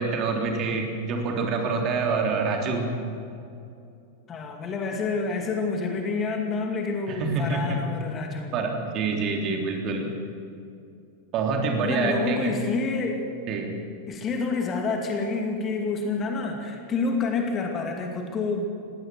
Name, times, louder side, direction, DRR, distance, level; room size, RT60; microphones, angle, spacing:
voice 1, 0.0-2.9 7.1-7.8 8.5-10.1 11.3-12.5 13.5-13.7, right 4 dB, 35° right, 2 dB, 3.4 m, -26 dB
voice 2, 4.3-8.5 11.8-13.2 14.1-18.7, left 4 dB, 25° left, 3 dB, 2.5 m, -28 dB
19.5 x 17.0 x 7.9 m, 2.6 s
figure-of-eight pair, 90°, 0 cm